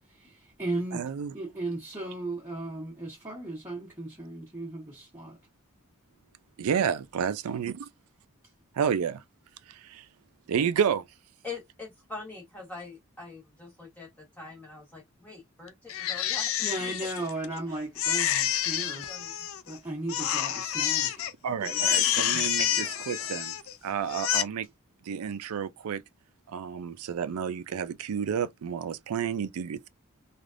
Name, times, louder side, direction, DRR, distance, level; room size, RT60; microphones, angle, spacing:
voice 1, 0.1-5.4 16.2-16.3 16.6-19.3 19.6-21.1 21.6-23.4, right 2 dB, 15° right, 1.1 m, -37 dB
voice 2, 0.9-1.3 6.6-7.9 8.8-9.2 9.7-10.1 10.5-11.1 21.4-23.6 23.8-24.7 25.0-26.0 26.5-29.9, right 7 dB, 85° right, 0.4 m, -30 dB
voice 3, 11.4-16.9 17.5-17.8 19.0-19.5, left 4 dB, 10° left, 1.2 m, -44 dB
Crying sobbing, 15.9-17.6 18.0-19.8 20.1-21.3 21.6-23.7 24.1-24.4, left 11 dB, 65° left, 0.4 m, -28 dB
3.2 x 2.4 x 2.5 m
head